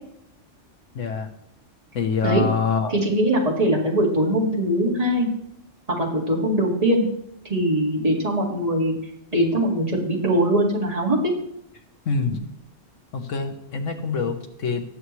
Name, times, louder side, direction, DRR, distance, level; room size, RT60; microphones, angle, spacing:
voice 1, 0.9-1.3 1.9-2.9 12.1-12.4 13.1-14.8, left 5 dB, 80° left, 6 dB, 1.4 m, -25 dB
voice 2, 2.9-5.3 5.9-7.1 7.5-9.0 9.3-11.3, right 1 dB, 30° right, -2 dB, 2.2 m, -21 dB
18.5 x 7.0 x 3.2 m, 0.77 s
omnidirectional pair, 1.3 m